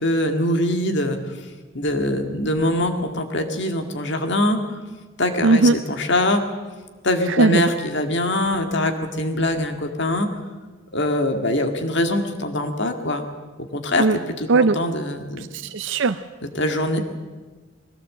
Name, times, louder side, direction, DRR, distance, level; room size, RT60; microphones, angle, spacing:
voice 1, 0.0-1.2 1.7-4.6 5.2-6.4 7.0-10.3 10.9-13.3 13.7-15.5 16.6-17.0, left 1 dB, 55° left, 6 dB, 2.0 m, -23 dB
voice 2, 5.4-5.7 7.3-7.6 14.0-14.2 14.5-14.8 15.4-16.2, right 3 dB, 60° right, 10 dB, 0.5 m, -18 dB
20.5 x 17.0 x 7.7 m, 1.3 s
head